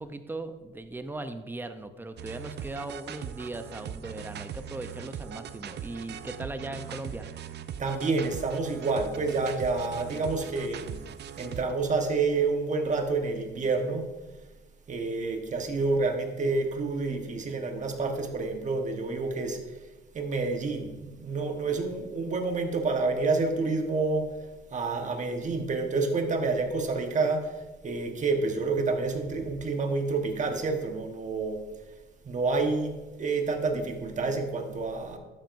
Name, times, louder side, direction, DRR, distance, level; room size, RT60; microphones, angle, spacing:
voice 1, 0.0-7.3, right 2 dB, 10° right, 9 dB, 0.6 m, -38 dB
sound 1, 2.2-11.7, right 9 dB, 60° right, 0.5 m, -40 dB
voice 2, 7.8-11.0 11.4-14.1 14.9-19.6 20.1-24.3 24.7-27.5 27.8-31.6 32.2-35.2, right 3 dB, 40° right, 4 dB, 1.2 m, -28 dB
12.0 x 7.6 x 2.6 m, 1.1 s
cardioid pair, 90°, 20 cm